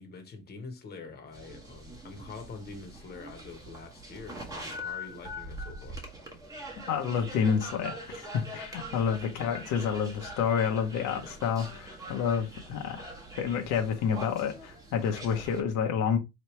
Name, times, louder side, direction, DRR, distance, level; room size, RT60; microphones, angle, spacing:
voice 1, 0.0-6.0 9.0-9.2, left 4 dB, 30° left, 1.1 m, -45 dB
sound 1, 1.3-15.6, equal, 10° right, 1.0 m, -43 dB
voice 2, 6.9-13.1 13.4-16.2, left 7 dB, 70° left, 0.9 m, -29 dB
4.3 x 3.1 x 3.1 m
cardioid pair, 145°, 33 cm